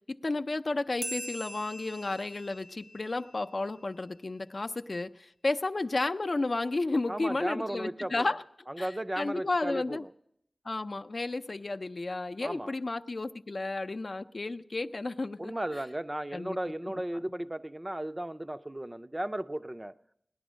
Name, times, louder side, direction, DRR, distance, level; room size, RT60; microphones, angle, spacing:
voice 1, 0.1-8.4 8.8-10.1 10.7-15.8 16.3-16.6 16.8-16.9, left 2 dB, 50° left, 0.5 m, -32 dB
sound 1, 1.0-4.1, equal, 75° right, 1.0 m, -43 dB
voice 2, 7.1-8.3 8.7-10.1 12.4-12.7 15.4-19.9, right 1 dB, 20° right, 0.5 m, -35 dB
18.5 x 11.0 x 6.2 m
wide cardioid pair, 80°, 0 cm